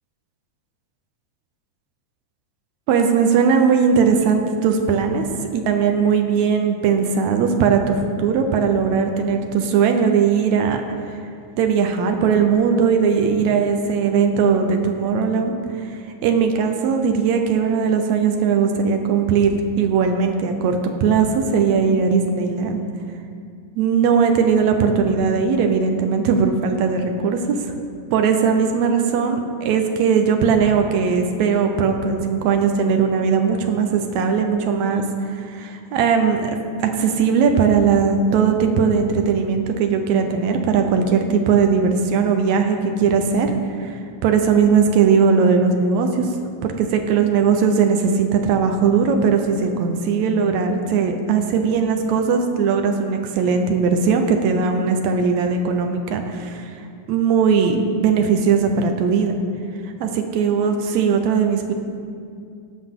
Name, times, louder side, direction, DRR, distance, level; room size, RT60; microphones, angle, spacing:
voice 1, 2.9-5.2 5.5-10.8 11.6-15.6 16.2-22.9 23.8-27.7 28.1-35.0 35.3-43.5 43.8-46.3 46.6-56.6 57.1-59.4 60.0-61.7, right 6 dB, 75° right, 5 dB, 1.9 m, -19 dB
17.5 x 6.2 x 3.6 m, 2.3 s
omnidirectional pair, 3.6 m